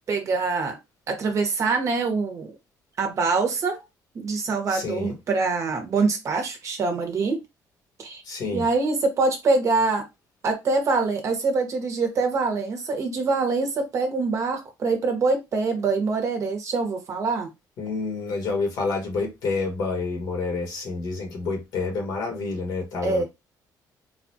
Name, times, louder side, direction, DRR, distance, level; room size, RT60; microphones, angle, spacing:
voice 1, 0.1-0.8 1.1-2.5 3.0-3.8 4.1-7.4 8.0-8.2 8.5-10.0 10.4-17.5 23.0-23.2, right 3 dB, 45° right, 1.2 m, -24 dB
voice 2, 4.7-5.1 8.2-8.7 17.8-23.2, left 3 dB, 70° left, 1.6 m, -28 dB
4.0 x 2.4 x 2.8 m
cardioid pair, 130°, 7 cm